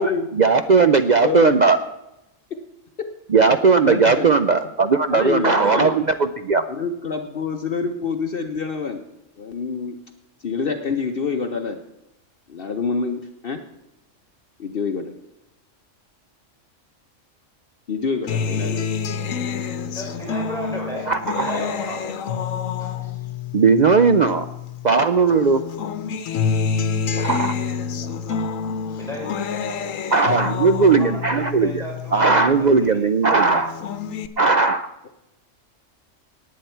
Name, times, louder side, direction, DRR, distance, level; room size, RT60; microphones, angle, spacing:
voice 1, 0.0-1.8 3.3-6.6 21.1-21.6 23.5-24.5 24.8-25.6 27.2-27.5 30.1-31.8 32.1-33.7 34.4-34.9, right 4 dB, 60° right, 9 dB, 0.4 m, -17 dB
voice 2, 1.2-1.6 2.5-2.6 3.8-4.3 5.1-5.9 6.7-9.0 9.4-10.0 10.4-11.8 12.5-13.6 14.6-15.1 17.9-18.9, left 5 dB, 50° left, 6 dB, 0.9 m, -26 dB
Acoustic guitar, 18.3-24.9 25.3-32.9 33.3-34.3, left 6 dB, 85° left, 1.2 m, -28 dB
voice 3, 19.8-21.1 21.3-22.0 22.8-23.1 29.0-29.3 30.1-30.3 31.0-31.1 31.6-33.0 33.5-33.7, equal, ahead, -5 dB, 6.1 m, -34 dB
18.5 x 8.6 x 4.5 m, 0.91 s
omnidirectional pair, 1.3 m